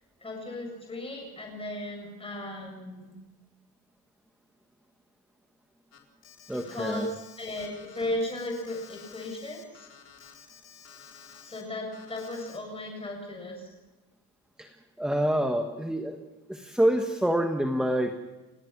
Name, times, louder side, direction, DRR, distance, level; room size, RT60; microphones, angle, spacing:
voice 1, 0.2-3.1 6.5-9.9 11.4-13.7, left 1 dB, 15° left, 1 dB, 7.6 m, -36 dB
Alarm, 5.9-11.6 11.9-12.6, left 7 dB, 40° left, 4.1 m, -51 dB
voice 2, 6.5-7.1 14.6-14.7 15.0-16.2 16.5-18.1, right 1 dB, ahead, 5 dB, 1.3 m, -26 dB
29.5 x 18.0 x 6.1 m, 1.2 s
cardioid pair, 165°, 39 cm